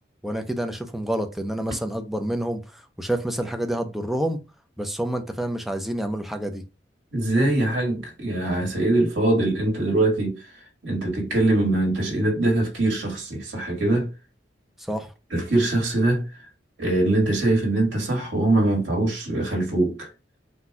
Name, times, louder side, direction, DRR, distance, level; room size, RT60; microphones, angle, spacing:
voice 1, 0.2-4.4 4.8-6.6 14.8-15.1, right 1 dB, ahead, 0.5 m, -28 dB
voice 2, 7.1-10.4 10.8-14.1 15.3-16.3 16.8-20.1, right 2 dB, 85° right, 1.6 m, -22 dB
4.1 x 2.3 x 4.4 m
head